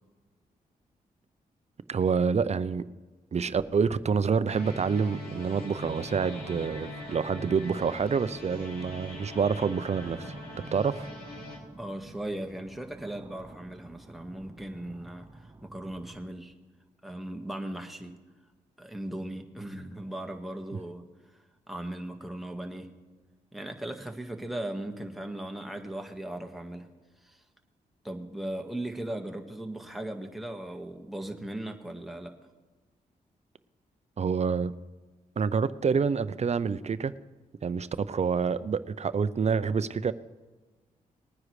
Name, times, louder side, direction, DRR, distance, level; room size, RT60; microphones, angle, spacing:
voice 1, 1.9-2.8 3.3-10.3 10.7-11.1 34.2-34.7 35.4-37.1 37.6-40.1, right 6 dB, 45° right, 14 dB, 0.6 m, -27 dB
sound 1, 4.5-11.6, left 1 dB, 80° left, 3.1 m, -42 dB
sound 2, 6.1-16.3, right 2 dB, 20° right, 1.1 m, -49 dB
voice 2, 11.8-16.5 17.0-18.1 18.8-21.4 21.7-22.9 23.5-26.9 27.2-27.4 28.0-32.3, right 1 dB, ahead, 3 dB, 1.6 m, -38 dB
20.5 x 9.7 x 3.2 m, 1.3 s
cardioid pair, 60°, 16 cm